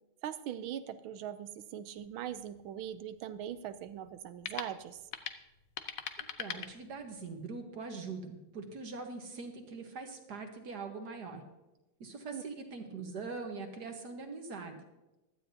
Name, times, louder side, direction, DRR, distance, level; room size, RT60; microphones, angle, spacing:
voice 1, 0.2-5.0 12.3-12.4, right 10 dB, 80° right, 13 dB, 1.4 m, -41 dB
sound 1, 2.0-7.3, left 8 dB, 75° left, 0.8 m, -45 dB
voice 2, 6.2-11.4 12.0-14.8, right 4 dB, 55° right, 5 dB, 1.6 m, -42 dB
16.0 x 12.0 x 2.7 m, 1.0 s
omnidirectional pair, 2.4 m